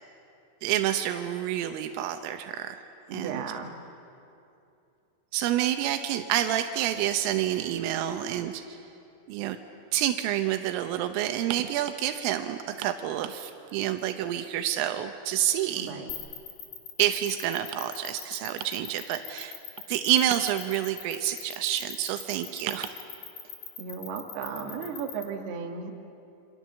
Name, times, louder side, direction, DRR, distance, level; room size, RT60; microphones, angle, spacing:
voice 1, 0.6-2.8 3.1-3.4 5.3-8.8 9.3-9.6 9.9-15.9 17.0-19.6 19.9-22.9, right 12 dB, 85° right, 7 dB, 3.5 m, -28 dB
voice 2, 3.1-3.7 15.8-16.1 23.8-26.0, right 5 dB, 60° right, 2 dB, 3.4 m, -35 dB
sound 1, 16.1-25.2, left 11 dB, 55° left, 3.8 m, -40 dB
28.0 x 26.5 x 7.4 m, 2.7 s
omnidirectional pair, 5.8 m